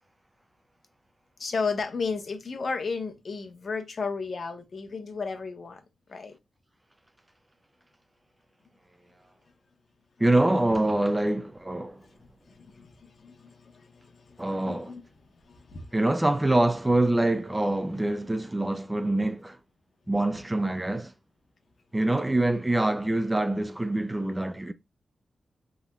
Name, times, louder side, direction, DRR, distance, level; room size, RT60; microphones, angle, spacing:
voice 1, 1.4-5.8 6.1-6.4 12.6-15.0 15.5-15.9, left 4 dB, 55° left, 1.2 m, -34 dB
voice 2, 10.2-12.0 14.4-15.0 15.9-19.6 20.1-21.1 21.9-24.7, right 1 dB, 15° right, 0.5 m, -25 dB
5.8 x 3.5 x 2.3 m
wide cardioid pair, 115°, 0 cm